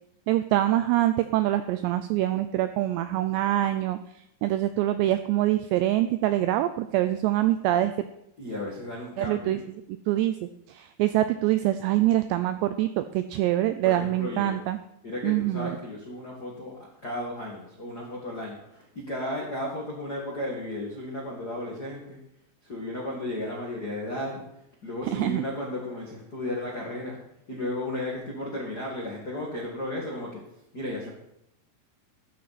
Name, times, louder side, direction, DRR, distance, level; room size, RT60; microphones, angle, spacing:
voice 1, 0.3-4.0 4.4-7.9 9.2-9.6 10.1-14.8 15.2-15.8 25.1-25.4, right 14 dB, 85° right, 11 dB, 2.5 m, -25 dB
voice 2, 8.4-9.6 13.8-14.6 15.0-22.2 22.6-24.4 24.8-27.2 27.5-30.4 30.7-31.1, left 1 dB, 55° left, -3 dB, 1.0 m, -34 dB
13.5 x 11.0 x 4.2 m, 0.80 s
omnidirectional pair, 5.5 m